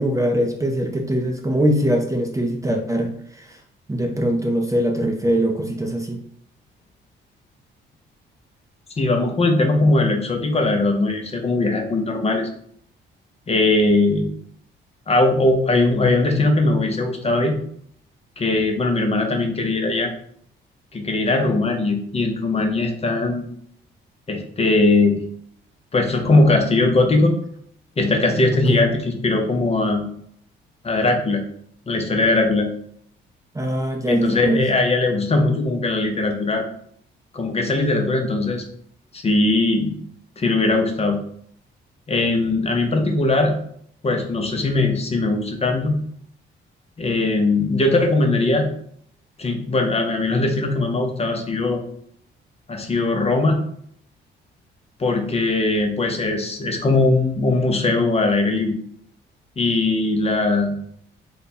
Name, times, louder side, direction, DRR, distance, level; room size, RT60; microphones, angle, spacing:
voice 1, 0.0-3.6 3.9-6.2 28.7-28.9 33.5-34.6, right 1 dB, 15° right, 2 dB, 0.5 m, -22 dB
voice 2, 9.0-12.5 13.5-14.3 15.1-17.6 18.4-20.1 20.9-23.5 24.3-25.2 25.9-27.3 28.0-30.0 30.8-31.4 31.9-32.7 34.1-36.6 37.3-38.6 39.1-40.0 40.4-41.2 42.1-43.6 44.0-46.0 47.0-48.7 49.4-51.8 52.7-53.6 55.0-58.8 59.6-60.8, left 2 dB, 30° left, 3 dB, 0.7 m, -20 dB
3.3 x 2.2 x 4.1 m, 0.65 s
cardioid pair, 90°, 20 cm